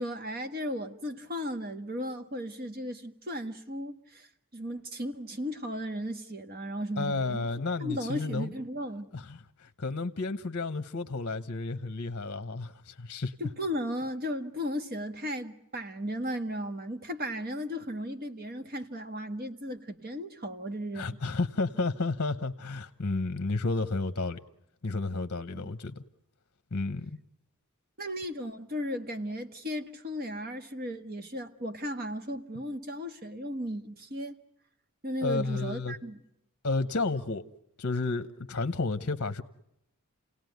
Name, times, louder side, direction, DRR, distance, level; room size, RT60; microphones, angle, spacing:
voice 1, 0.0-4.3 4.5-7.5 7.8-9.1 13.4-21.2 25.5-25.7 28.0-34.3 35.0-36.2, equal, 45° right, 1.6 m, -35 dB
voice 2, 7.0-8.5 9.1-13.3 20.9-24.4 24.8-26.0 26.7-27.2 35.2-36.0 36.6-37.4 37.8-39.4, left 3 dB, 50° left, 0.9 m, -31 dB
29.5 x 17.5 x 9.3 m
head